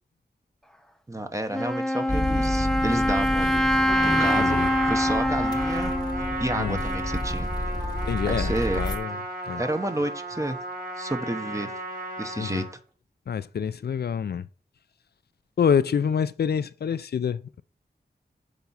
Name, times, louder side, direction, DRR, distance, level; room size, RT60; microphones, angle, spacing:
voice 1, 1.1-3.7 4.0-5.9 6.4-7.5 8.2-8.8 9.6-10.6 11.0-11.7 12.2-12.7, right 1 dB, 20° right, 1.0 m, -30 dB
Wind instrument woodwind instrument, 1.5-7.3, left 1 dB, 5° left, 0.7 m, -25 dB
sound 1, 2.1-9.0, left 1 dB, 25° left, 1.0 m, -31 dB
Trumpet, 3.7-12.7, right 2 dB, 65° right, 3.7 m, -34 dB
voice 2, 4.3-4.7 6.6-6.8 8.1-9.2 9.5-9.6 12.4-12.6 13.3-14.5 15.6-17.6, left 7 dB, 80° left, 0.5 m, -27 dB
6.9 x 4.6 x 5.5 m
wide cardioid pair, 85°, 16 cm